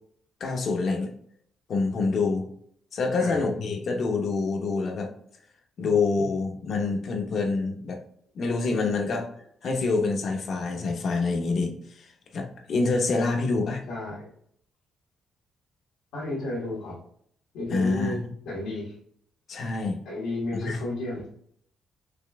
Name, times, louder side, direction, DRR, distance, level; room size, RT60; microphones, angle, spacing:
voice 1, 0.4-1.1 1.7-2.5 2.9-5.1 5.8-8.0 8.3-9.3 9.6-13.8 17.7-18.3 19.5-20.0 20.5-20.8, left 3 dB, 55° left, 3 dB, 0.8 m, -26 dB
voice 2, 13.9-14.3 16.1-17.0 17.5-18.2 18.4-18.9 20.0-21.2, left 2 dB, 90° left, -8 dB, 1.4 m, -32 dB
5.1 x 3.1 x 2.3 m, 0.66 s
cardioid pair, 90°, 0 cm